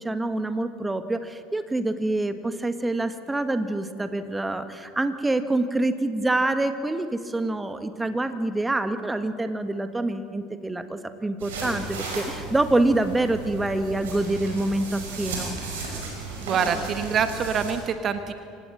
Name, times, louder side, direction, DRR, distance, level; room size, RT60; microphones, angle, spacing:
voice 1, 0.0-15.5, right 2 dB, 10° right, 10 dB, 1.6 m, -26 dB
sound 1, 11.4-17.7, right 3 dB, 70° right, 5.7 m, -35 dB
voice 2, 16.4-18.3, right 7 dB, 40° right, 9 dB, 1.3 m, -25 dB
26.5 x 17.5 x 7.6 m, 2.3 s
figure-of-eight pair, 65°, 0 cm